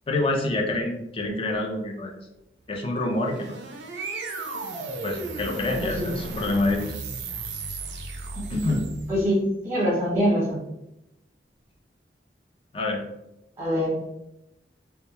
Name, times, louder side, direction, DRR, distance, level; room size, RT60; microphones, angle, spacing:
voice 1, 0.1-2.1 2.7-3.5 5.0-6.9 8.5-8.9 12.7-13.0, left 2 dB, 30° left, 1 dB, 0.4 m, -27 dB
sound 1, 3.0-9.3, right 3 dB, 70° right, 0.4 m, -35 dB
voice 2, 9.1-10.6 13.6-14.0, equal, 15° right, -6 dB, 0.9 m, -24 dB
2.2 x 2.1 x 2.9 m, 0.90 s
head